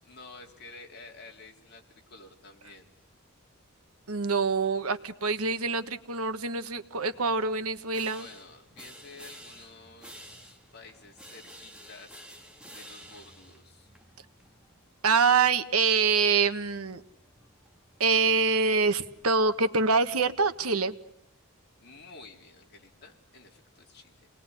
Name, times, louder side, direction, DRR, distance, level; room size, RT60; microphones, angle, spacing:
voice 1, 0.0-2.9 8.1-12.2 12.7-13.9 21.8-24.3, left 3 dB, 50° left, 1 dB, 3.9 m, -51 dB
voice 2, 4.1-8.3 15.0-17.0 18.0-20.9, right 4 dB, 85° right, 10 dB, 1.4 m, -25 dB
sound 1, 6.7-20.7, right 1 dB, 5° right, 2.2 m, -53 dB
30.0 x 20.5 x 9.8 m, 0.79 s
head